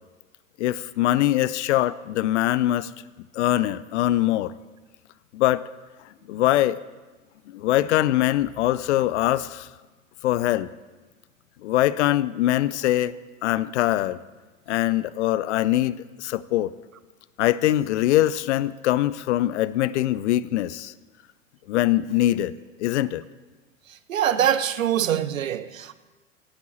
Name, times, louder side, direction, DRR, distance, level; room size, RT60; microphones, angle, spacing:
voice 1, 0.6-2.9 3.4-4.5 5.3-5.7 6.3-6.8 7.5-9.7 10.2-10.7 11.6-13.1 13.4-14.2 14.7-16.7 17.4-20.9 21.7-22.5 22.8-23.2, left 14 dB, 60° left, 18 dB, 0.6 m, -22 dB
voice 2, 24.1-25.9, right 10 dB, 80° right, 15 dB, 0.7 m, -23 dB
17.0 x 8.2 x 4.2 m, 1.2 s
figure-of-eight pair, 90°, 40 cm